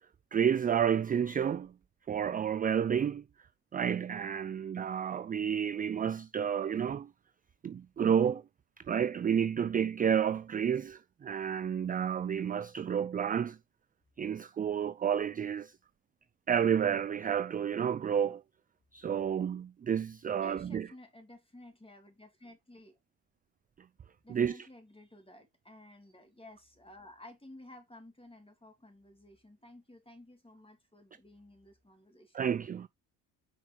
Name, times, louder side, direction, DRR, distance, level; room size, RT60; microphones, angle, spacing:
voice 1, 0.3-1.7 2.1-3.2 3.7-7.1 7.6-8.4 8.9-13.6 14.2-15.7 16.5-18.4 18.9-20.9 24.3-24.7 32.3-32.9, right 8 dB, 20° right, 0.3 m, -30 dB
voice 2, 20.4-22.9 24.2-32.5, left 1 dB, 10° left, 3.0 m, -54 dB
6.0 x 4.9 x 3.6 m
hypercardioid pair, 50°, 46 cm